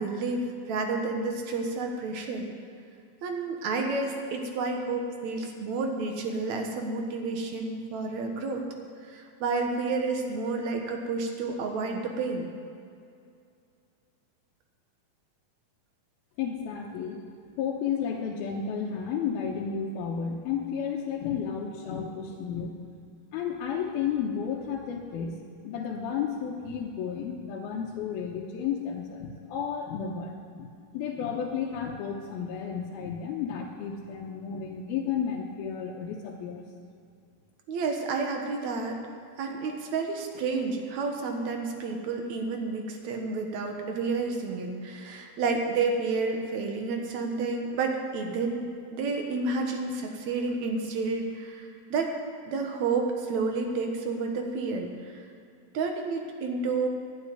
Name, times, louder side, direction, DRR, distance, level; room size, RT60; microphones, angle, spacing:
voice 1, 0.0-2.5 3.2-8.6 9.1-12.5 37.7-39.0 39.4-48.6 48.9-52.1 52.5-55.1 55.7-56.9, right 4 dB, 60° right, 2 dB, 2.2 m, -30 dB
voice 2, 16.4-17.2 17.6-22.8 23.3-25.4 25.6-36.6, left 7 dB, 80° left, -2 dB, 2.8 m, -32 dB
11.5 x 8.6 x 9.6 m, 2.4 s
omnidirectional pair, 4.4 m